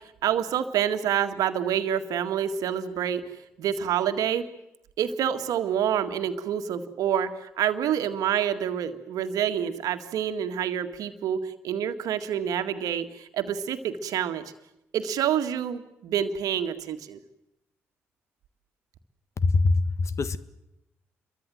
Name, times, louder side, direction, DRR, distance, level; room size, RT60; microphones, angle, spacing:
voice 1, 0.2-3.2 3.6-4.5 5.0-7.3 7.6-14.4 14.9-17.2, right 9 dB, 60° right, 8 dB, 1.9 m, -27 dB
voice 2, 19.4-20.4, left 3 dB, 45° left, 15 dB, 1.4 m, -23 dB
28.0 x 23.0 x 7.8 m, 0.88 s
figure-of-eight pair, 40°, 7 cm